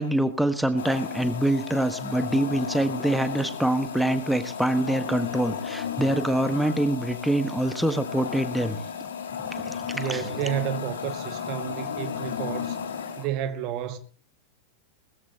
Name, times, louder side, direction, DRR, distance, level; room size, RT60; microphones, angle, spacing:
voice 1, 0.0-8.8 9.5-10.2, right 1 dB, ahead, 1.3 m, -25 dB
sound 1, 0.8-13.3, left 7 dB, 65° left, 3.3 m, -34 dB
voice 2, 9.9-12.8 13.2-14.0, right 11 dB, 40° right, 1.2 m, -31 dB
20.0 x 14.5 x 2.9 m
figure-of-eight pair, 90°, 0 cm